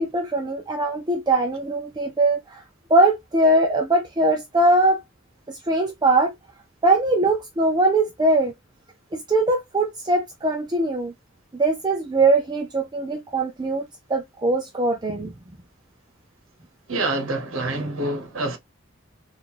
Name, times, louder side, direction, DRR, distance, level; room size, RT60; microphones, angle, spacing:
voice 1, 0.0-2.6 2.9-5.0 5.5-6.3 6.8-8.5 9.1-11.1 11.5-15.3, right 2 dB, 20° right, 0.4 m, -21 dB
voice 2, 16.9-18.6, right 2 dB, 65° right, 0.9 m, -26 dB
4.1 x 2.5 x 2.9 m
head